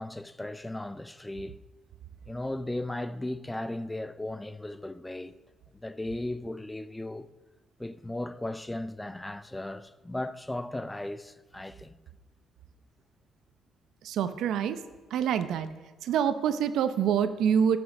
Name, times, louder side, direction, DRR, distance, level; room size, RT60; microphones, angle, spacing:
voice 1, 0.0-1.6 2.3-5.3 5.7-7.3 7.8-11.9, left 1 dB, 10° left, 0.5 m, -36 dB
voice 2, 14.0-14.8 15.1-15.7 16.0-17.8, right 8 dB, 80° right, 0.7 m, -26 dB
13.0 x 6.3 x 6.0 m
cardioid pair, 90°, 0 cm